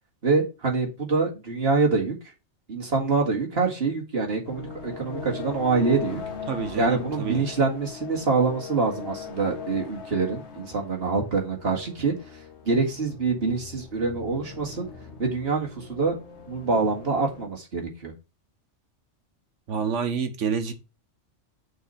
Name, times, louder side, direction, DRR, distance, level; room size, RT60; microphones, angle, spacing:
voice 1, 0.2-2.2 2.7-6.2 6.8-12.1 12.7-14.9 15.2-16.2 16.5-18.1, right 4 dB, 55° right, 0 dB, 2.1 m, -25 dB
sound 1, 4.4-17.5, left 6 dB, 65° left, 1.5 m, -40 dB
voice 2, 6.5-7.4 19.7-20.7, right 6 dB, 85° right, 8 dB, 1.4 m, -28 dB
6.5 x 4.1 x 5.7 m, 0.29 s
omnidirectional pair, 1.2 m